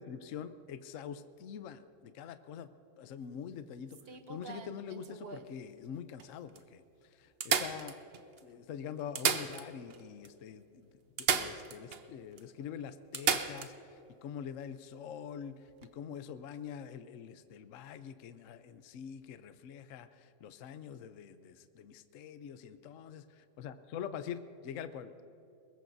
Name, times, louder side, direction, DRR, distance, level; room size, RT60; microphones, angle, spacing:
voice 1, 0.0-2.7 3.0-8.0 8.4-10.9 11.2-25.1, left 8 dB, 65° left, 11 dB, 0.8 m, -45 dB
sound 1, 3.9-5.5 6.2-6.3 6.6-6.7 7.4-8.4 9.0-10.0 10.3-10.4 11.2-12.0 12.4-12.5 13.1-13.7 15.7-15.9, right 6 dB, 70° right, 0.5 m, -33 dB
22.5 x 20.5 x 2.7 m, 2.7 s
omnidirectional pair, 2.0 m